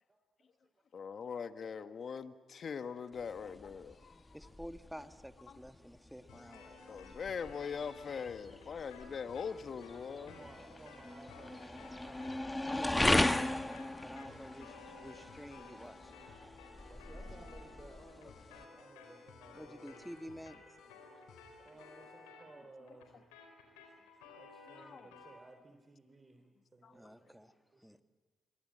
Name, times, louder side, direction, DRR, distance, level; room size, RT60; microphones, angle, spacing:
voice 1, 0.9-4.2 5.5-5.6 6.9-10.3 24.7-25.1 26.8-27.1, left 6 dB, 55° left, 1.3 m, -42 dB
sound 1, 3.1-18.6, left 1 dB, 15° left, 1.4 m, -38 dB
voice 2, 4.3-7.0 12.7-14.7 15.0-16.4 19.5-20.6 26.9-27.5 27.8-28.0, equal, ahead, 1.8 m, -49 dB
voice 3, 5.8-6.4 9.5-20.1 21.2-23.3 23.7-27.4 27.7-27.9, right 2 dB, 35° right, 3.5 m, -59 dB
sound 2, 6.3-22.3, left 5 dB, 70° left, 3.7 m, -59 dB
sound 3, 6.5-15.9 16.1-25.4, left 4 dB, 90° left, 4.3 m, -58 dB
27.0 x 23.0 x 8.7 m
hypercardioid pair, 50°, 0 cm